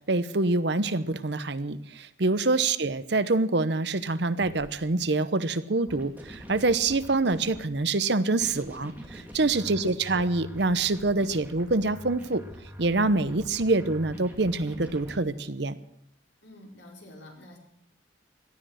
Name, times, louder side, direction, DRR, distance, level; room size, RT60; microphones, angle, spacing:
voice 1, 0.1-12.4 12.8-15.8, right 3 dB, 60° right, 14 dB, 0.9 m, -26 dB
sound 1, 4.4-4.7 5.9-7.7 8.4-15.1, equal, 10° right, 2.7 m, -45 dB
voice 2, 9.3-9.7 16.4-17.6, left 1 dB, 70° left, 0 dB, 4.6 m, -49 dB
17.5 x 13.0 x 6.4 m, 0.76 s
head